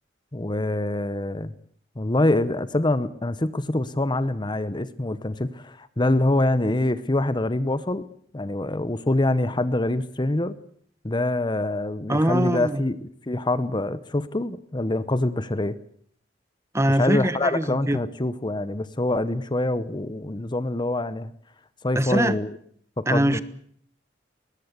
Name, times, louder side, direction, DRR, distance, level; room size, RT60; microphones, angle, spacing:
voice 1, 0.3-1.5 2.0-8.1 8.3-10.6 11.0-15.7 16.9-21.3 21.8-22.6 23.0-23.4, left 2 dB, 25° left, 14 dB, 0.9 m, -25 dB
voice 2, 12.1-12.8 16.7-18.0 21.9-22.3 23.1-23.4, right 1 dB, 15° right, 14 dB, 1.2 m, -22 dB
21.5 x 20.0 x 8.2 m, 0.62 s
head